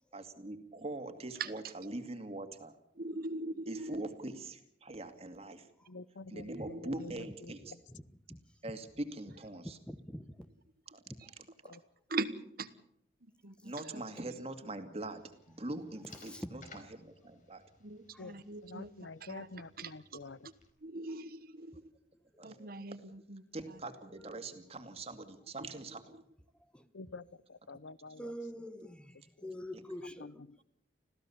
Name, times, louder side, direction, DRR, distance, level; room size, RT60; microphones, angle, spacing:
voice 1, 0.1-2.8 3.7-5.7 6.3-7.7 8.6-9.8 10.9-11.0 11.6-11.7 13.6-17.6 22.4-22.6 23.5-26.0, right 2 dB, 35° right, 2.3 m, -43 dB
voice 2, 2.9-4.0 6.5-7.0 12.1-12.7 13.4-14.0 17.8-19.5 19.8-20.2 20.8-21.8 22.4-23.8, right 3 dB, 55° right, 1.3 m, -41 dB
voice 3, 5.9-7.8 11.6-11.8 18.2-20.5 26.9-28.3 29.4-29.5 30.2-30.6, left 3 dB, 90° left, 0.8 m, -48 dB
voice 4, 7.6-8.0 8.3-8.4 9.9-10.4 11.1-11.3 13.6-13.7 16.2-16.7 18.1-18.3 22.3-22.7 24.1-24.4 26.6-26.9 28.2-30.4, equal, 5° left, 1.0 m, -46 dB
sound 1, 14.9-20.7, left 3 dB, 45° left, 4.4 m, -61 dB
26.5 x 16.0 x 7.2 m
head